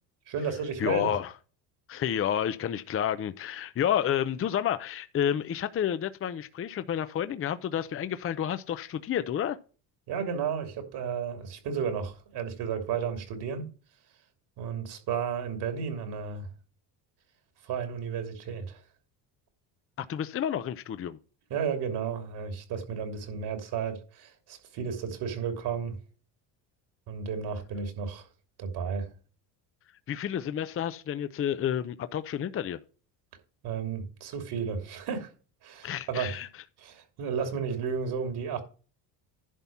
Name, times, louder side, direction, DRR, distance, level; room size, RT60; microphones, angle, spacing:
voice 1, 0.3-1.1 10.1-13.7 14.6-16.5 17.6-18.8 21.5-26.0 27.1-28.3 28.6-29.1 33.6-35.3 35.6-36.4 36.8-38.6, right 6 dB, 65° right, 2.9 m, -33 dB
voice 2, 0.8-1.3 1.9-9.6 20.0-21.2 30.1-32.8 35.8-36.5, left 9 dB, 30° left, 0.6 m, -30 dB
11.0 x 4.1 x 7.2 m
cardioid pair, 105°, 43 cm